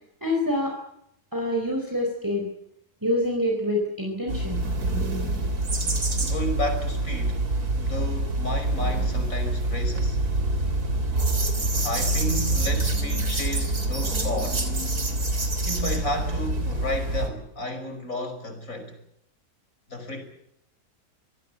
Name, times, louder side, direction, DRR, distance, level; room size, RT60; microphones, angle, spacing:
voice 1, 0.2-0.8 1.3-2.5 3.0-4.6, left 1 dB, 10° right, 4.4 m, -26 dB
sound 1, 4.3-17.3, right 2 dB, 75° right, 3.8 m, -26 dB
voice 2, 6.1-10.2 11.8-14.7 15.6-19.0 19.9-20.2, left 1 dB, 60° left, 5.8 m, -32 dB
26.5 x 18.5 x 7.7 m
omnidirectional pair, 1.6 m